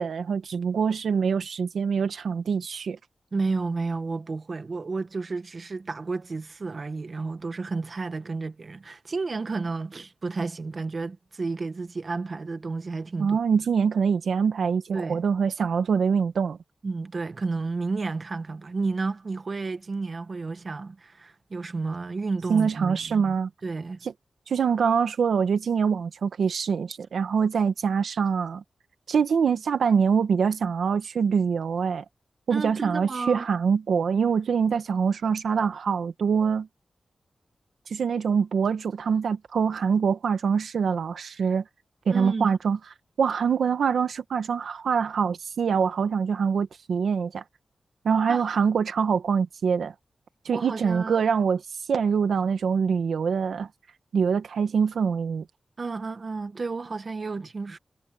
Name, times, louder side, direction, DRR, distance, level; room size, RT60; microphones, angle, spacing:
voice 1, 0.0-3.0 13.2-16.6 22.5-23.5 24.0-24.1 24.5-28.6 29.1-32.0 32.5-36.7 37.9-41.6 42.1-42.8 43.2-47.4 48.0-49.9 50.4-53.7 54.1-55.4, right 6 dB, 90° right, 1.2 m, -24 dB
voice 2, 3.3-13.4 14.9-15.3 16.8-23.4 23.6-24.0 32.5-33.5 42.1-42.5 48.3-48.5 50.5-51.2 55.8-57.8, right 3 dB, 55° right, 1.6 m, -31 dB
cardioid pair, 60°, 0 cm